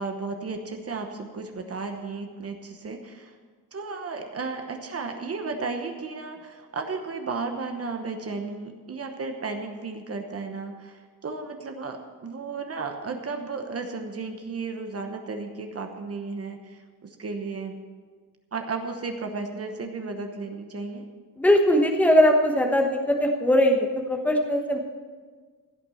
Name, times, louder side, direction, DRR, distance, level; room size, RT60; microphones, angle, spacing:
voice 1, 0.0-3.3 3.7-17.8 18.5-21.0, right 4 dB, 45° right, 5 dB, 1.0 m, -34 dB
voice 2, 21.4-24.8, equal, 5° left, 2 dB, 1.1 m, -20 dB
16.0 x 6.0 x 7.7 m, 1.5 s
wide cardioid pair, 155°, 33 cm